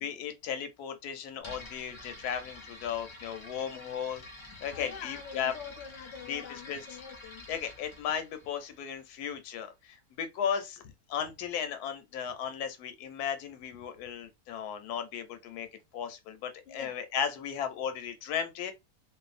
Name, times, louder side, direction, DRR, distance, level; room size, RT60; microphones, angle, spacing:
voice 1, 0.0-4.2 4.6-5.5 6.3-6.8 7.5-15.7 15.9-18.7, left 8 dB, 85° left, 1.1 m, -35 dB
sound 1, 1.4-9.2, left 2 dB, 45° left, 0.4 m, -49 dB
voice 2, 4.7-7.5 16.7-17.0, left 7 dB, 65° left, 0.7 m, -45 dB
2.6 x 2.2 x 2.4 m
omnidirectional pair, 1.6 m